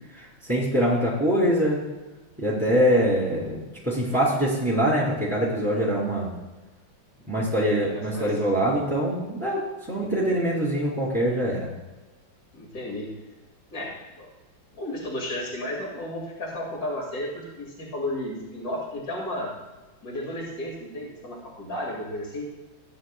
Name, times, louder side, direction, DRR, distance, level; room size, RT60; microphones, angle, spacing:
voice 1, 0.1-1.8 2.4-3.6 3.8-6.4 7.3-11.7, equal, 5° right, -8 dB, 2.9 m, -24 dB
voice 2, 7.7-8.3 10.0-10.1 12.5-13.1 13.7-14.3 14.7-19.5 20.0-22.4, left 1 dB, 50° left, -3 dB, 2.9 m, -33 dB
16.5 x 9.2 x 2.4 m, 1.1 s
omnidirectional pair, 2.1 m